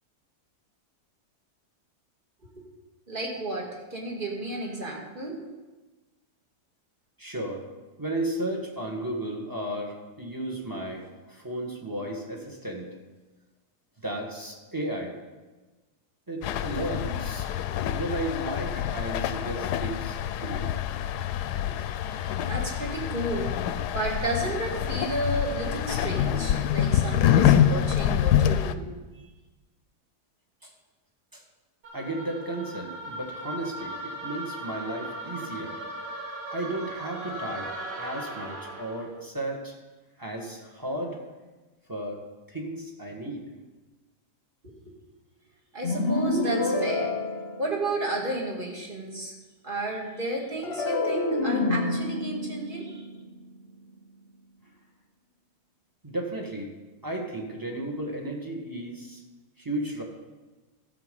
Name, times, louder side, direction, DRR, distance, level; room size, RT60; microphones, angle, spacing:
voice 1, 3.1-5.4 21.9-23.5 23.9-28.9 44.6-44.7 45.7-47.1 47.6-49.3 49.6-53.0, right 2 dB, 30° right, -1 dB, 2.1 m, -32 dB
voice 2, 7.2-7.7 8.0-12.9 14.0-15.2 16.3-17.5 17.8-20.8 21.0-21.1 30.6-30.7 31.3-31.4 31.9-35.8 36.5-37.7 38.0-39.7 40.2-41.2 41.9-43.5 56.0-56.7 57.0-59.2 59.6-60.0, right 1 dB, 15° right, 0 dB, 1.6 m, -34 dB
sound 1, 16.4-28.7, left 10 dB, 85° left, 1.1 m, -26 dB
sound 2, 31.8-39.1, right 1 dB, 90° right, 2.9 m, -38 dB
sound 3, 45.8-48.2 50.6-54.0, left 2 dB, 45° left, 1.1 m, -28 dB
13.5 x 7.1 x 5.4 m, 1.2 s
omnidirectional pair, 1.7 m